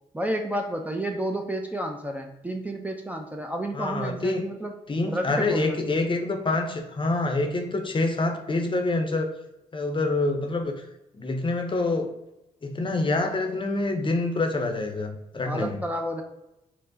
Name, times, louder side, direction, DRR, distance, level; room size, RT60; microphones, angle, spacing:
voice 1, 0.1-4.8 5.1-6.1 15.4-16.2, right 1 dB, 10° right, 3 dB, 0.4 m, -31 dB
voice 2, 3.7-4.5 4.9-9.3 9.7-10.9 11.1-12.1 12.6-15.8, left 2 dB, 30° left, 4 dB, 0.6 m, -26 dB
4.3 x 2.0 x 2.6 m, 0.90 s
supercardioid pair, 50°, 16 cm